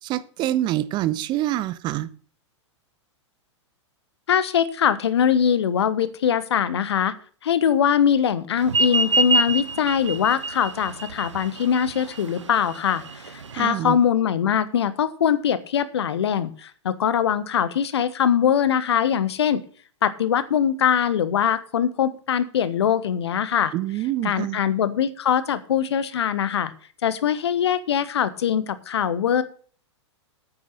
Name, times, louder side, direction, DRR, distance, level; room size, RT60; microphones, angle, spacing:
voice 1, 0.0-2.1 13.5-14.0 23.7-24.6, right 14 dB, 30° right, 16 dB, 0.7 m, -26 dB
voice 2, 4.3-7.1 7.4-19.6 20.0-23.7 24.2-26.7 27.0-29.4, left 8 dB, 60° left, 15 dB, 1.1 m, -22 dB
sound 1, 8.7-13.7, right 3 dB, 75° right, 1.1 m, -25 dB
9.3 x 9.1 x 5.8 m, 0.43 s
figure-of-eight pair, 100°, 15 cm